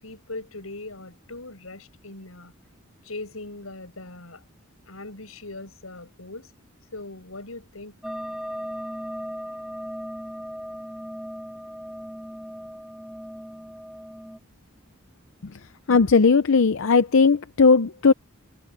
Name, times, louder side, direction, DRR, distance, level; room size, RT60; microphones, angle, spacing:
voice 1, 0.0-2.5 3.0-4.4 4.9-6.5 6.9-8.0, left 2 dB, 85° left, 7.5 m, -40 dB
sound 1, 8.0-14.4, equal, ahead, 2.3 m, -37 dB
voice 2, 15.9-18.1, left 4 dB, 65° left, 0.6 m, -17 dB
head